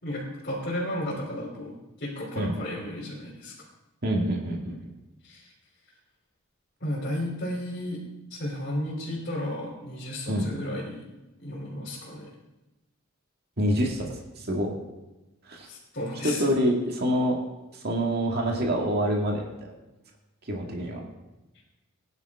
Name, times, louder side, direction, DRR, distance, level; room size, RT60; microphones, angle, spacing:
voice 1, 0.0-3.5 5.2-5.5 6.8-8.0 8.3-11.1 11.4-12.3 15.7-16.5, left 1 dB, 45° left, -7 dB, 3.2 m, -33 dB
voice 2, 4.0-4.8 10.3-10.5 13.6-14.7 15.5-15.7 16.2-17.4 17.7-19.7 20.5-21.0, equal, 50° right, 0 dB, 2.0 m, -26 dB
18.5 x 11.0 x 3.6 m, 1.0 s
head